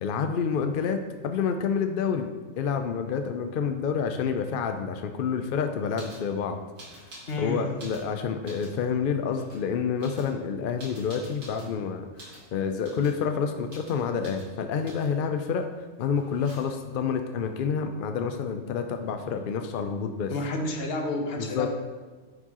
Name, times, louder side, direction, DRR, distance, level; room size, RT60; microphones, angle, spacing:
voice 1, 0.0-2.3 2.6-6.6 7.0-7.1 7.4-15.7 16.0-20.3 21.4-21.7, left 6 dB, 70° left, 6 dB, 0.5 m, -28 dB
sound 1, 5.9-6.3 6.8-7.4 7.7-8.8 9.3-9.6 10.0-11.7 12.2-12.5 12.8-13.2 13.7-14.0 14.2-14.5 14.8-15.2 16.1-16.9 18.7-18.8 19.0-19.6, right 1 dB, 75° right, 2.3 m, -48 dB
voice 2, 7.3-7.7 20.3-21.7, left 2 dB, 55° left, 3 dB, 1.0 m, -30 dB
9.9 x 4.6 x 2.9 m, 1.3 s
omnidirectional pair, 1.4 m